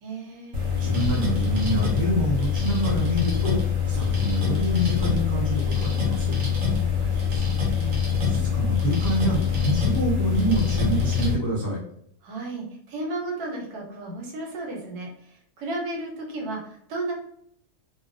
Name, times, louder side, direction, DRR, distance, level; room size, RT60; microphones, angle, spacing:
voice 1, 0.0-0.6 6.9-8.0 12.2-17.1, right 2 dB, 80° right, 0 dB, 1.2 m, -34 dB
sound 1, 0.5-11.3, left 7 dB, 65° right, 1.1 m, -24 dB
voice 2, 0.7-6.3 8.2-11.8, right 1 dB, 30° left, -7 dB, 0.4 m, -26 dB
2.6 x 2.1 x 2.5 m, 0.67 s
omnidirectional pair, 1.6 m